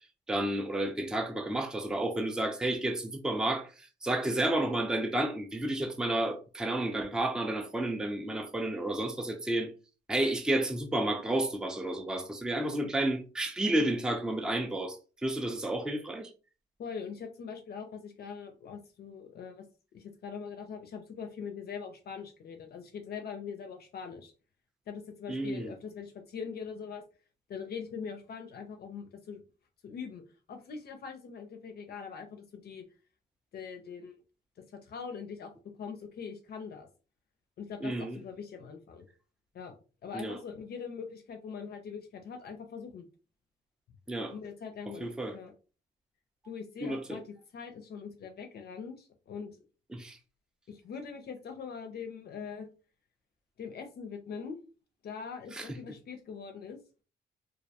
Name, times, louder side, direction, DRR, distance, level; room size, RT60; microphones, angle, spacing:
voice 1, 0.3-9.7 10.1-16.3 25.3-25.7 37.8-38.2 40.1-40.4 44.1-44.3 45.0-45.4 46.8-47.2 49.9-50.2 55.5-55.7, right 1 dB, 5° right, 0.4 m, -31 dB
voice 2, 16.8-19.6 19.9-24.3 24.9-27.0 27.5-29.4 29.8-30.2 30.5-32.8 33.5-34.2 34.7-35.5 35.8-36.9 37.6-39.0 39.5-39.8 40.0-43.1 44.3-45.5 46.4-47.2 47.5-49.6 50.7-52.7 53.6-54.6 55.0-56.8, left 6 dB, 55° left, 0.5 m, -42 dB
2.3 x 2.1 x 2.7 m
cardioid pair, 90°, 20 cm